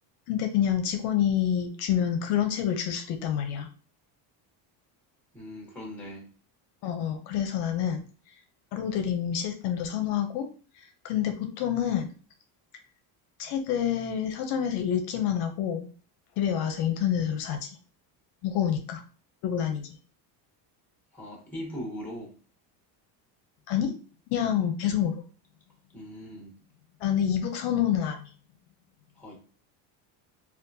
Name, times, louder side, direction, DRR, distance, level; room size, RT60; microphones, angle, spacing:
voice 1, 0.3-3.7 6.8-8.0 8.7-10.5 10.8-12.1 13.4-15.9 16.4-17.7 18.4-19.0 19.4-19.9 23.7-23.9 24.3-25.1 27.0-28.3, left 9 dB, 65° left, 5 dB, 0.6 m, -27 dB
voice 2, 5.3-6.3 21.1-22.3 25.9-26.5 29.2-29.4, equal, 5° left, -1 dB, 1.0 m, -39 dB
3.7 x 2.4 x 2.6 m, 0.38 s
cardioid pair, 160°, 44 cm